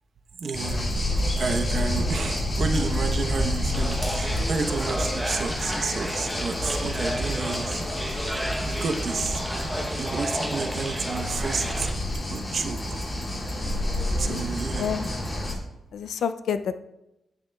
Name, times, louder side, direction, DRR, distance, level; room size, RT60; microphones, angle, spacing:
voice 1, 0.4-0.9 1.4-8.4 8.7-9.5 10.0-11.9 12.1-13.0 14.2-14.8, right 4 dB, 55° right, 5 dB, 0.8 m, -31 dB
sound 1, 0.5-15.5, left 1 dB, 30° left, 1.8 m, -29 dB
sound 2, 3.7-11.9, equal, 5° right, 0.8 m, -33 dB
Piano, 9.0-11.4, right 4 dB, 70° right, 1.1 m, -46 dB
voice 2, 14.0-14.5 14.8-15.1 15.9-16.8, left 7 dB, 90° left, 11 dB, 0.3 m, -29 dB
10.5 x 8.8 x 2.2 m, 0.91 s
wide cardioid pair, 135°, 0 cm